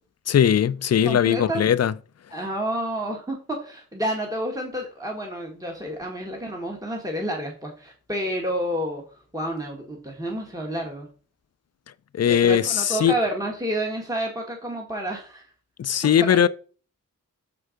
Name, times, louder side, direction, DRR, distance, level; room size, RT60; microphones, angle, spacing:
voice 1, 0.3-1.9 12.1-13.1 15.8-16.5, left 9 dB, 50° left, 0.4 m, -19 dB
voice 2, 1.0-1.7 2.3-9.0 9.3-11.1 12.3-15.5 16.3-16.5, right 1 dB, 10° right, 1.5 m, -29 dB
6.7 x 4.4 x 5.0 m
wide cardioid pair, 100°, 32 cm